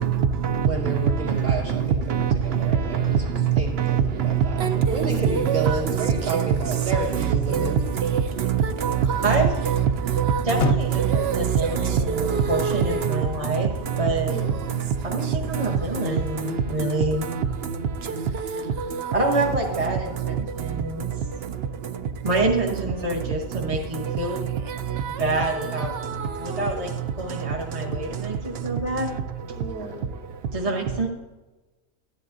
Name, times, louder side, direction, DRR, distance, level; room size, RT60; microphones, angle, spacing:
voice 1, 0.0-1.0 1.2-1.5 2.1-2.6 2.9-3.0 3.4-13.2 15.3-15.7 16.1-16.2 16.4-16.9 17.3-17.4 18.3-19.5 24.1-24.2 26.0-26.2, right 7 dB, 60° right, 0.7 m, -24 dB
voice 2, 0.5-7.8 14.3-14.6 29.5-30.1, right 3 dB, 45° right, 2.5 m, -31 dB
sound 1, 7.5-8.2 8.4-8.5 10.4-11.3 12.9-13.8, left 8 dB, 65° left, 0.8 m, -31 dB
voice 3, 9.2-9.7 10.4-13.7 14.0-14.3 15.0-17.3 19.1-21.1 22.2-24.5 25.2-26.0 26.4-29.1 30.5-31.1, right 2 dB, 30° right, 1.0 m, -27 dB
13.5 x 10.5 x 2.6 m
omnidirectional pair, 1.4 m